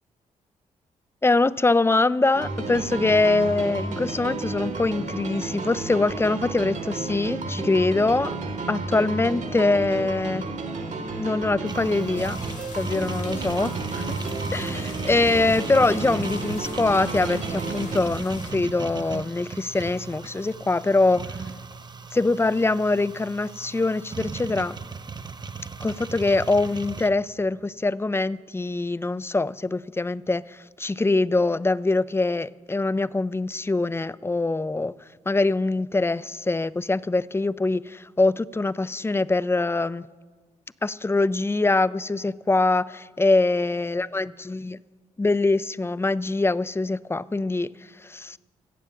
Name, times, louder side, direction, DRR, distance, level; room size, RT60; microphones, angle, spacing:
voice 1, 1.2-8.3 8.7-10.5 11.2-12.4 12.7-14.2 14.5-21.4 22.1-24.7 25.8-34.9 35.3-40.1 40.8-44.8 45.2-47.7 48.0-48.4, left 2 dB, 15° left, 19 dB, 0.4 m, -23 dB
sound 1, 2.3-18.0, right 3 dB, 60° right, 1.5 m, -32 dB
sound 2, 11.6-27.1, right 5 dB, 30° right, 0.7 m, -36 dB
sound 3, 12.2-18.5, left 5 dB, 60° left, 1.7 m, -44 dB
16.0 x 7.4 x 6.5 m, 1.4 s
supercardioid pair, 55°, 14 cm